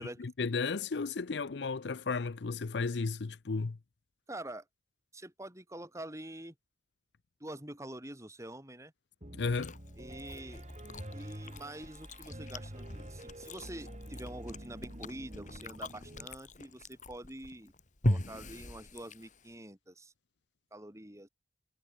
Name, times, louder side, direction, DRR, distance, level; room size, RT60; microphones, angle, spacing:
voice 1, 0.0-3.8 9.3-9.7, left 4 dB, 70° left, 0.6 m, -34 dB
voice 2, 4.3-4.6 5.1-6.5 7.4-8.9 10.0-10.7 11.1-17.7 18.0-20.1 20.7-21.3, right 1 dB, 15° right, 5.8 m, -46 dB
Piano, 9.2-16.3, equal, 40° right, 5.6 m, -47 dB
Chewing mastication, 9.4-19.6, left 1 dB, 45° left, 2.6 m, -40 dB
head